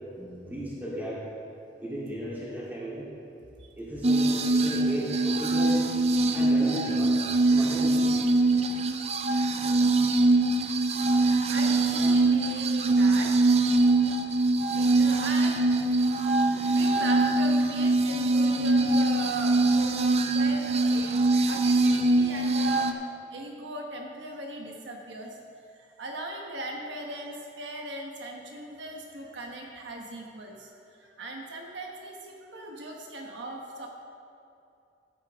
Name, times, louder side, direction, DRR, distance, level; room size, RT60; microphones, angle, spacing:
voice 1, 0.1-1.3 1.8-3.1 3.8-5.8 6.3-7.2 7.5-8.1, equal, 10° right, -8 dB, 2.9 m, -35 dB
sound 1, 4.0-22.9, right 2 dB, 35° right, 0.5 m, -23 dB
voice 2, 11.5-13.5 14.7-25.4 25.7-33.9, right 1 dB, 75° right, 1 dB, 1.1 m, -39 dB
14.0 x 9.7 x 3.5 m, 2.7 s
head